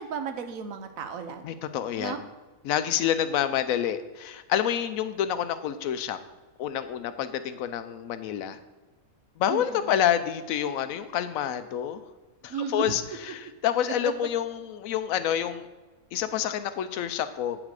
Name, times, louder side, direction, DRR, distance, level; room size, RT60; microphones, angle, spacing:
voice 1, 0.0-1.4 2.0-2.2 9.5-10.0 12.5-12.9 13.8-14.3, right 6 dB, 85° right, 8 dB, 1.2 m, -34 dB
voice 2, 1.4-2.1 2.6-6.2 6.6-8.6 9.4-12.0 12.4-15.7 16.1-17.6, left 10 dB, 85° left, 11 dB, 1.0 m, -28 dB
8.9 x 4.9 x 4.8 m, 1.2 s
omnidirectional pair, 1.4 m